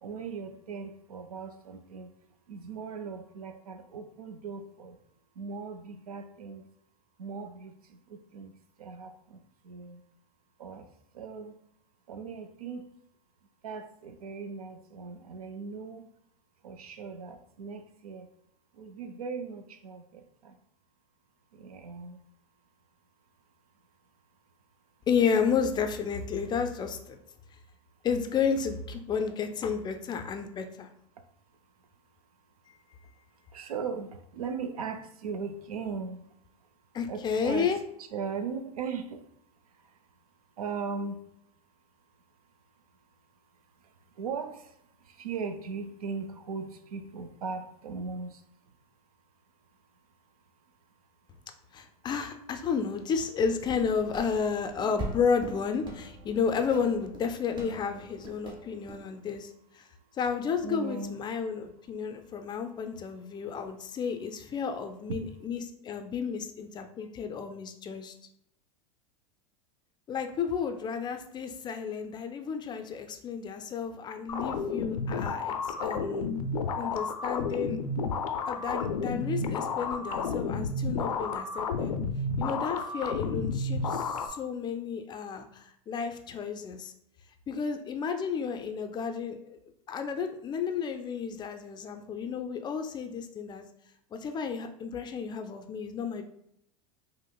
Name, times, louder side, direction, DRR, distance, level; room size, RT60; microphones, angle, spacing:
voice 1, 0.0-2.1 2.5-5.0 5.4-6.6 7.2-10.0 10.6-10.9 11.1-11.6 12.1-12.9 13.6-16.1 16.6-18.3 18.7-20.6 21.5-22.2 31.1-31.2 33.3-36.7 37.1-37.7 38.0-39.2 39.7-40.0 40.6-41.2 43.7-48.7 60.6-61.2, right 5 dB, 85° right, 8 dB, 0.4 m, -39 dB
voice 2, 25.1-27.2 28.0-30.9 36.9-37.8 51.7-59.8 60.2-68.1 70.1-76.3 76.8-77.8 78.5-81.9 82.4-86.9 87.5-89.6 89.9-93.6 94.1-96.2, left 6 dB, 25° left, 7 dB, 0.4 m, -32 dB
sound 1, 53.6-59.0, right 2 dB, 25° right, 0.8 m, -43 dB
sound 2, 74.3-84.3, left 4 dB, 85° left, 0.4 m, -31 dB
5.0 x 2.0 x 2.3 m, 0.74 s
hypercardioid pair, 95°, 19 cm